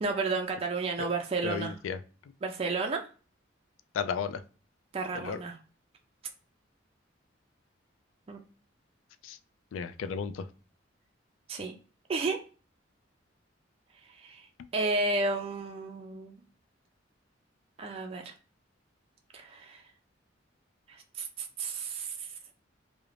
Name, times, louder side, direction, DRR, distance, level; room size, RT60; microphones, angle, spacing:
voice 1, 0.0-1.7 2.4-3.0 4.9-5.5 8.3-8.4 11.5-11.7 12.1-12.4 14.2-14.5 14.7-16.3 17.8-18.3 19.3-19.8 20.9-22.3, right 3 dB, 30° right, 3 dB, 0.3 m, -32 dB
voice 2, 1.4-2.0 3.9-4.4 5.1-5.4 9.2-9.4 9.7-10.5, left 6 dB, 90° left, 11 dB, 0.3 m, -34 dB
2.4 x 2.0 x 3.0 m, 0.36 s
head